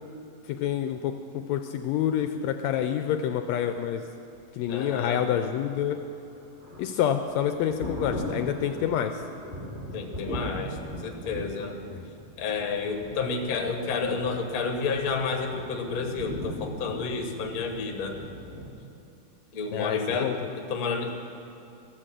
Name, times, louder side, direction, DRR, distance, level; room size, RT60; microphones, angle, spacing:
voice 1, 0.5-4.0 4.5-6.0 6.8-9.2 11.9-12.0 19.7-20.5, left 9 dB, 80° left, 7 dB, 1.7 m, -28 dB
voice 2, 4.7-5.2 9.9-11.7 12.4-18.2 19.5-21.1, left 4 dB, 50° left, 3 dB, 1.1 m, -30 dB
Thunder, 5.9-18.7, equal, 20° right, 2.9 m, -39 dB
14.0 x 8.9 x 7.4 m, 2.7 s
omnidirectional pair, 3.4 m